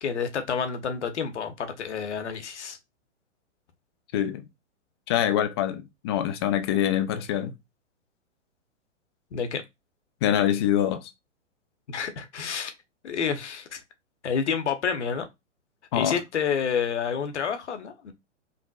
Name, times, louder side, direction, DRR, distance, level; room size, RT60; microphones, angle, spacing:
voice 1, 0.0-2.8 9.3-9.6 11.9-12.7 13.0-13.8 14.2-15.3 15.9-18.1, left 6 dB, 65° left, 1.0 m, -29 dB
voice 2, 4.1-4.4 5.1-7.5 10.2-11.1 15.9-16.2, left 10 dB, 25° left, 0.3 m, -25 dB
5.3 x 2.5 x 2.3 m
figure-of-eight pair, 110°, 37 cm